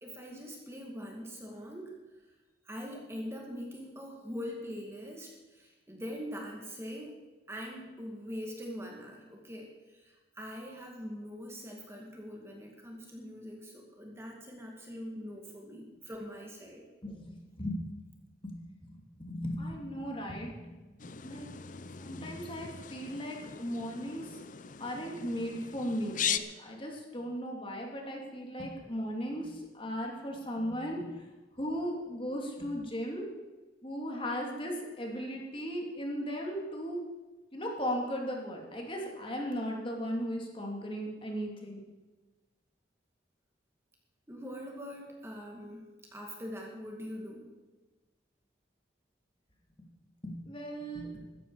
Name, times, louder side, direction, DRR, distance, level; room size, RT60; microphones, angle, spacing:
voice 1, 0.0-1.9 2.7-7.1 7.5-16.8 44.3-47.5, equal, 15° right, 0 dB, 2.2 m, -43 dB
voice 2, 17.0-17.8 18.4-18.6 19.2-20.9 21.2-21.5 22.0-24.4 24.8-31.1 31.6-33.3 33.8-37.0 37.5-41.8 50.2-51.1, equal, 30° left, 0 dB, 2.8 m, -37 dB
sound 1, 21.0-26.4, left 8 dB, 45° left, 0.7 m, -39 dB
15.5 x 13.5 x 4.9 m, 1.2 s
head